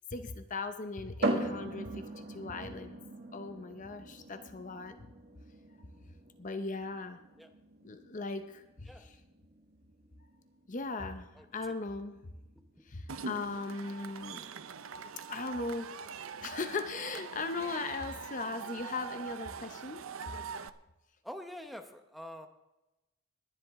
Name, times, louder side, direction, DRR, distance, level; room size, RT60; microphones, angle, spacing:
voice 1, 0.1-3.0 3.3-5.0 6.4-7.2 7.8-9.2 10.7-12.2 12.8-14.5 15.3-15.9 16.4-20.0, left 3 dB, 35° left, 9 dB, 0.7 m, -38 dB
sound 1, 1.2-14.7, right 2 dB, 45° right, 1.7 m, -41 dB
Cheering / Crowd, 13.1-20.7, right 5 dB, 65° right, 0.6 m, -43 dB
voice 2, 21.2-22.5, equal, ahead, 6 dB, 0.9 m, -45 dB
19.5 x 11.0 x 3.6 m, 0.99 s
head